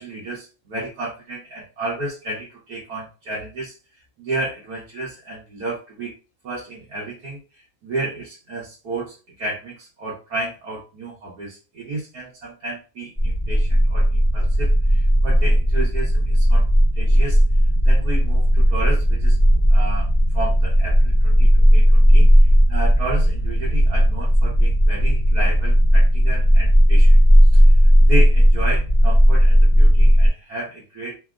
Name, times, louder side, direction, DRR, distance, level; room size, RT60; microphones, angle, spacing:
voice 1, 0.0-3.7 4.2-6.1 6.4-16.7 17.0-17.4 17.8-27.2 27.5-31.2, right 2 dB, 80° right, -6 dB, 1.5 m, -32 dB
sound 1, 13.2-30.3, equal, 35° right, 0.6 m, -15 dB
3.4 x 2.1 x 2.4 m, 0.33 s
omnidirectional pair, 1.6 m